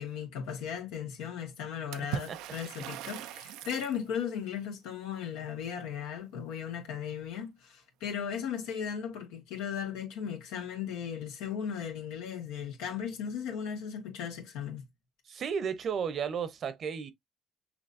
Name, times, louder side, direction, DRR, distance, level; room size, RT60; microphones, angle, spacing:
voice 1, 0.0-14.8, left 8 dB, 90° left, 1.6 m, -37 dB
Water / Splash splatter, 1.9-4.0, right 10 dB, 85° right, 0.5 m, -40 dB
voice 2, 15.3-17.1, right 7 dB, 55° right, 0.9 m, -33 dB
6.1 x 2.8 x 2.6 m
supercardioid pair, 80°, 0 cm